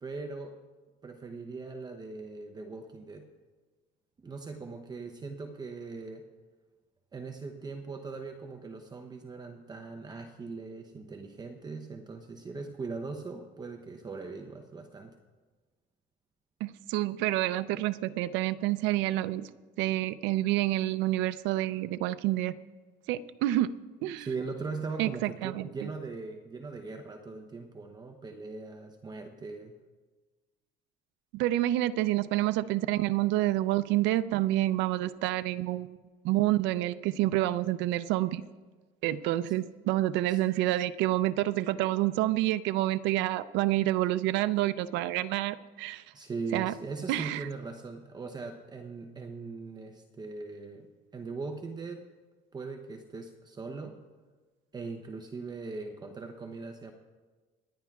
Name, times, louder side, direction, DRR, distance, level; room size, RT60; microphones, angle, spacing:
voice 1, 0.0-0.6 1.0-3.3 4.2-6.3 7.1-15.1 24.2-29.7 40.3-40.4 46.1-52.1 52.5-54.0 54.7-56.9, right 4 dB, 20° right, 5 dB, 0.8 m, -40 dB
voice 2, 16.6-19.4 19.8-22.5 23.1-23.7 24.0-24.3 25.0-25.7 31.3-36.0 36.2-38.4 39.0-46.0 46.5-46.7 47.1-47.5, right 15 dB, 80° right, 14 dB, 0.5 m, -28 dB
27.0 x 10.5 x 2.4 m, 1.3 s
cardioid pair, 135°, 19 cm